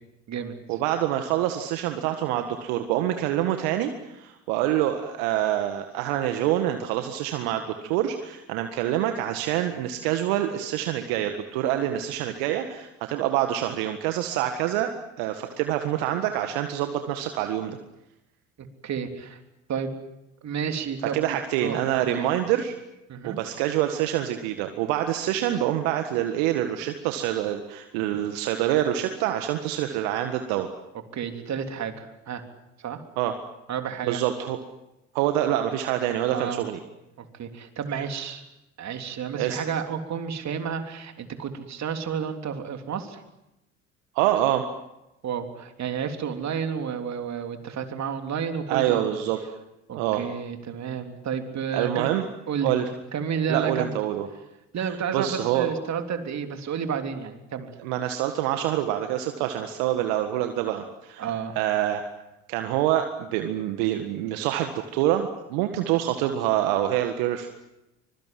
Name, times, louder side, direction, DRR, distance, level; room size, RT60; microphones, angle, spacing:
voice 1, 0.7-14.9 15.2-17.8 21.0-22.7 23.2-30.7 33.2-33.3 34.0-34.6 35.1-36.8 39.3-39.6 44.1-44.7 48.7-49.4 49.9-50.2 51.7-52.3 52.6-52.8 53.5-54.3 54.8-55.7 57.8-62.0 62.5-67.5, right 12 dB, 70° right, 7 dB, 1.8 m, -26 dB
voice 2, 18.6-19.4 19.7-19.9 20.4-21.8 22.1-22.3 23.1-23.4 31.1-32.4 32.8-33.0 33.7-34.2 36.3-36.6 37.2-38.4 38.8-43.2 45.2-49.2 49.9-52.1 52.5-54.0 54.7-57.7 61.2-61.6, right 7 dB, 45° right, 6 dB, 3.4 m, -31 dB
25.0 x 23.0 x 7.7 m, 0.91 s
hypercardioid pair, 60°, 37 cm